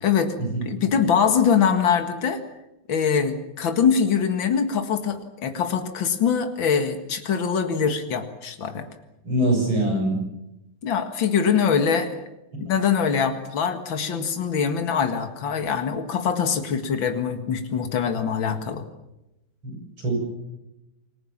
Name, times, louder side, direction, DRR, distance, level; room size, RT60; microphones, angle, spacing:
voice 1, 0.0-0.3 0.7-2.4 2.9-8.9 10.8-12.2 12.6-18.8, left 7 dB, 75° left, 7 dB, 2.7 m, -23 dB
voice 2, 9.2-10.2 19.6-20.1, right 1 dB, 90° right, 2 dB, 8.7 m, -23 dB
29.0 x 21.0 x 7.4 m, 0.92 s
omnidirectional pair, 2.1 m